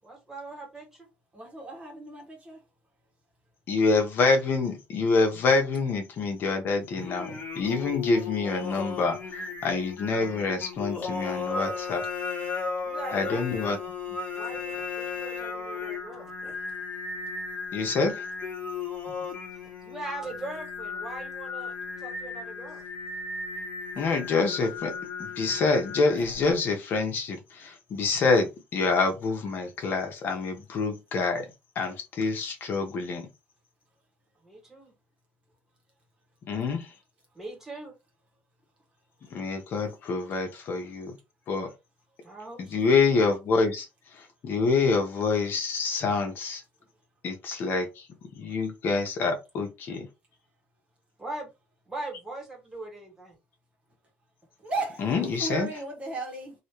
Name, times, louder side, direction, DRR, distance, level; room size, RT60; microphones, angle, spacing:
voice 1, 0.0-1.1 12.8-13.4 14.3-16.6 19.8-22.8 34.4-34.9 37.3-37.9 42.2-42.7 51.2-51.5 51.9-53.3, right 2 dB, 10° right, 2.0 m, -40 dB
voice 2, 1.3-2.6 19.2-19.3 39.3-39.4 54.6-55.1 55.4-56.5, right 3 dB, 30° right, 1.5 m, -35 dB
voice 3, 3.7-12.0 13.1-13.8 17.7-18.3 24.0-24.9 25.2-31.5 31.7-33.3 36.5-36.9 39.3-41.1 41.5-41.7 42.6-43.9 44.1-46.6 47.2-48.1 48.4-50.1 55.0-55.7, left 4 dB, 55° left, 1.1 m, -26 dB
Singing, 6.9-26.5, left 5 dB, 35° left, 1.4 m, -36 dB
3.1 x 2.9 x 3.1 m
cardioid pair, 120°, 4 cm